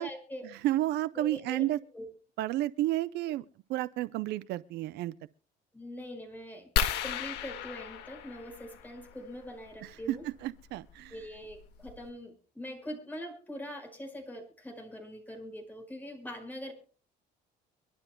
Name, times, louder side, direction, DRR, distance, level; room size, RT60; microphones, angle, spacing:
voice 1, 0.0-0.5 1.1-2.1 5.7-6.7 7.0-10.2 11.1-16.7, equal, 10° left, 5.1 m, -43 dB
voice 2, 0.6-1.8 2.4-3.4 3.7-5.1 9.8-11.2, right 15 dB, 80° right, 0.6 m, -31 dB
sound 1, 6.8-9.1 10.7-10.9 11.5-11.6 11.9-12.1, left 8 dB, 85° left, 1.7 m, -33 dB
23.5 x 12.0 x 2.2 m
cardioid pair, 110°, 17 cm